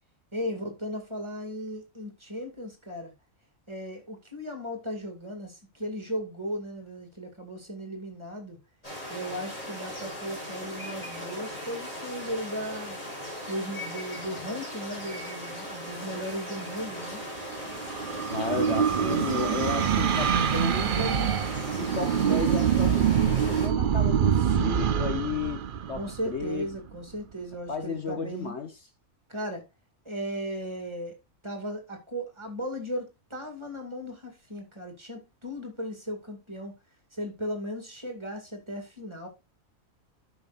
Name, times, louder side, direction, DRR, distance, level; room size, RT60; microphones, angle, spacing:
voice 1, 0.3-3.1 3.7-8.6 9.1-13.0 13.5-17.2 18.9-19.7 26.0-28.6 29.3-29.7 30.0-31.1 31.4-36.7 37.1-39.3, equal, 20° right, 2.5 m, -36 dB
sound 1, 8.8-23.7, equal, 25° left, 5.0 m, -38 dB
sound 2, 17.2-26.8, right 8 dB, 50° right, 0.6 m, -25 dB
voice 2, 18.3-21.4 21.8-26.7 27.7-28.9, left 5 dB, 55° left, 1.3 m, -34 dB
12.5 x 6.0 x 2.5 m
omnidirectional pair, 1.4 m